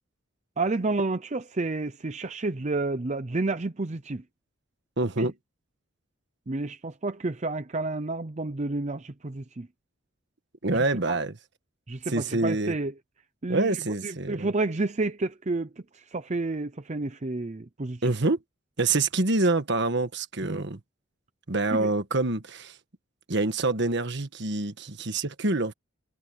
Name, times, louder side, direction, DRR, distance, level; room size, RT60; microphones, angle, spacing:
voice 1, 0.6-4.2 5.2-5.3 6.5-9.7 11.1-11.2 11.9-12.9 13.4-18.1 20.4-20.6 21.7-21.9, right 2 dB, 35° right, 0.6 m, -30 dB
voice 2, 5.0-5.3 10.6-11.3 12.1-12.7 13.5-14.5 18.0-18.4 18.8-20.8 21.5-22.8 23.3-25.7, right 2 dB, 60° right, 1.5 m, -26 dB
head